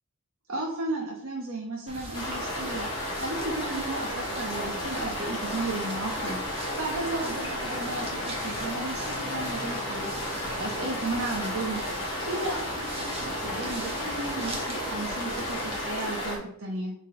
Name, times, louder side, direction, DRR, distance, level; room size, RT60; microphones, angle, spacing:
voice 1, 0.5-2.9 3.2-10.2 10.6-11.9 12.3-16.9, right 2 dB, 65° right, -1 dB, 1.2 m, -34 dB
sound 1, 1.9-15.8, right 1 dB, 25° right, 1.5 m, -41 dB
sound 2, 2.1-16.4, left 1 dB, 20° left, 2.3 m, -33 dB
7.3 x 4.1 x 3.8 m, 0.69 s
head